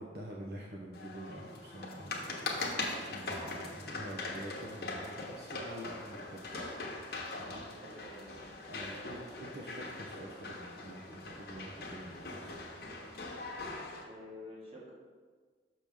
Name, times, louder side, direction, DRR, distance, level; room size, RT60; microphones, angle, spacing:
voice 1, 0.0-2.6 3.1-6.6 7.4-8.1 8.7-12.6, right 1 dB, 60° right, -2 dB, 0.7 m, -47 dB
sound 1, 0.9-14.0, left 2 dB, 60° left, 0.9 m, -41 dB
voice 2, 7.8-9.1 14.1-14.9, left 1 dB, 35° right, -5 dB, 1.6 m, -50 dB
6.2 x 5.8 x 3.5 m, 1.5 s
head